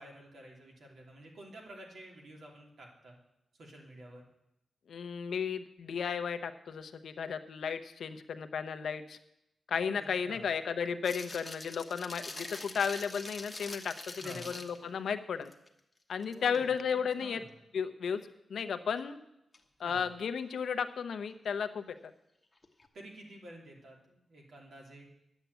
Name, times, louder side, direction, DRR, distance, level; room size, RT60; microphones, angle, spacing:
voice 1, 0.0-3.2 3.6-4.3 9.9-10.5 14.2-14.6 16.3-17.5 19.8-20.1 22.9-25.1, right 1 dB, 65° right, 0 dB, 2.9 m, -50 dB
voice 2, 4.9-9.2 9.7-15.5 16.1-17.4 17.7-18.2 18.5-19.2 19.8-21.8, left 6 dB, 80° left, 9 dB, 0.8 m, -34 dB
sound 1, 11.0-14.9 15.4-15.7 16.1-16.6 19.5-19.6 22.6-22.9, left 2 dB, 15° left, 1.1 m, -44 dB
10.5 x 8.2 x 8.1 m, 0.84 s
wide cardioid pair, 140°, 0 cm